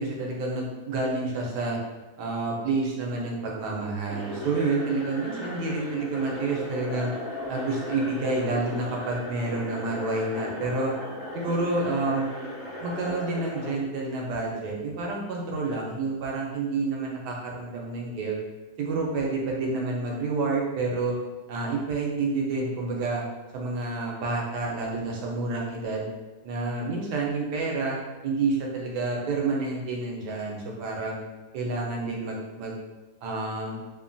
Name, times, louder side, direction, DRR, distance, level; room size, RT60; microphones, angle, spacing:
voice 1, 0.0-1.8 2.2-7.1 7.5-10.9 11.3-12.3 12.8-18.4 18.8-21.1 21.5-23.2 23.5-26.1 26.4-28.0 28.2-31.2 31.5-32.8 33.2-33.8, right 3 dB, 85° right, -2 dB, 1.2 m, -29 dB
sound 1, 4.1-13.7, left 1 dB, 55° left, 0.4 m, -37 dB
3.2 x 2.1 x 2.5 m, 1.1 s
omnidirectional pair, 1.7 m